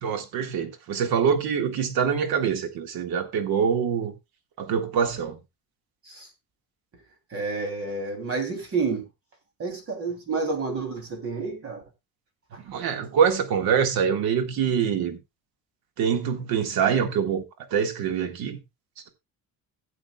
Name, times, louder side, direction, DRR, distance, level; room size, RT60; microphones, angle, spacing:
voice 1, 0.0-4.1 4.6-5.4 12.7-15.2 16.0-17.4 17.7-18.6, right 7 dB, 80° right, 1.9 m, -24 dB
voice 2, 7.3-9.0 9.6-11.8 12.5-12.6, right 4 dB, 40° right, 3.0 m, -29 dB
16.5 x 7.8 x 2.3 m
cardioid pair, 165°, 36 cm